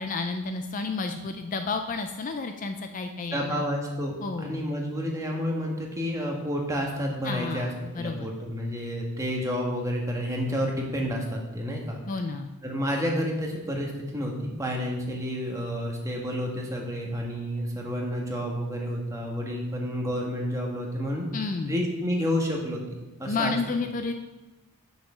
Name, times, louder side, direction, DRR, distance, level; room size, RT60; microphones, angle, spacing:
voice 1, 0.0-3.6 4.2-4.7 7.2-8.3 12.1-12.5 21.3-21.8 23.3-24.1, left 3 dB, 35° left, 7 dB, 0.4 m, -31 dB
voice 2, 3.3-12.0 12.6-21.3 21.7-22.8 23.2-23.5, equal, 15° right, -1 dB, 1.4 m, -30 dB
6.5 x 6.2 x 6.0 m, 1.1 s
head